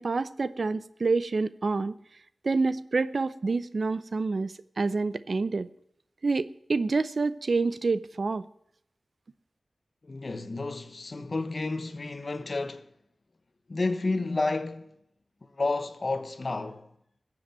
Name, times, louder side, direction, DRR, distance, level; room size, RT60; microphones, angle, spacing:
voice 1, 0.0-1.9 2.4-5.7 6.2-8.4, right 3 dB, 65° right, 0.7 m, -27 dB
voice 2, 10.0-12.9 13.7-14.9 15.4-16.9, left 3 dB, 55° left, 1.2 m, -31 dB
14.5 x 7.9 x 9.0 m
wide cardioid pair, 60°, 0 cm